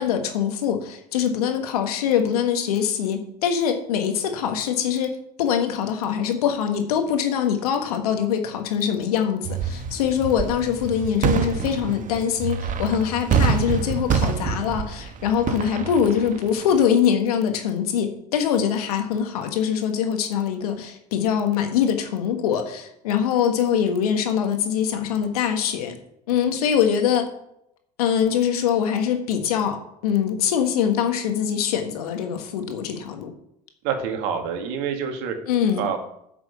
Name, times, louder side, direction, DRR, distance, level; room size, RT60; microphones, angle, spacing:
voice 1, 0.0-25.9 26.3-27.3 28.0-33.3 35.5-35.9, left 8 dB, 80° left, 6 dB, 1.6 m, -23 dB
sound 1, 9.4-16.8, right 7 dB, 45° right, 1.2 m, -26 dB
voice 2, 33.8-35.4 35.8-36.0, right 7 dB, 70° right, 4 dB, 2.1 m, -27 dB
9.3 x 6.2 x 6.9 m, 0.76 s
hypercardioid pair, 65°, 19 cm